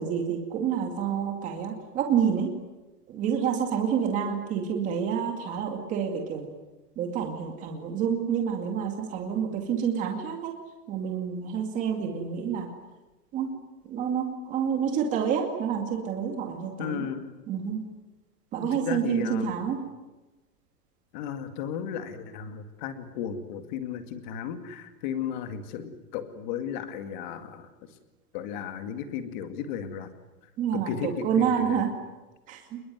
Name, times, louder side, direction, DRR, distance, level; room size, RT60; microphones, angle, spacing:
voice 1, 0.0-2.5 3.1-6.5 7.0-10.5 10.9-12.7 13.3-13.5 13.8-17.1 17.5-17.8 18.5-19.8 30.6-31.9 32.5-32.8, right 8 dB, 15° right, 3 dB, 2.3 m, -28 dB
voice 2, 16.8-17.3 18.7-19.5 21.1-27.7 28.3-30.1 30.7-31.8, left 8 dB, 30° left, 8 dB, 2.2 m, -34 dB
26.5 x 22.0 x 9.4 m, 1.1 s
supercardioid pair, 180°, 48 cm